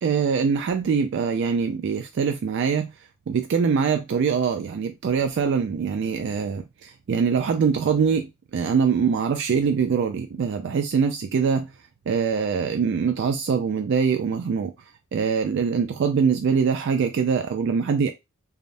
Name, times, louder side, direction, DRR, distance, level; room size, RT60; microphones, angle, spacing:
voice 1, 0.0-2.9 3.3-11.7 12.1-14.7 15.1-18.1, right 6 dB, 60° right, 0.3 m, -23 dB
3.2 x 2.0 x 2.6 m
head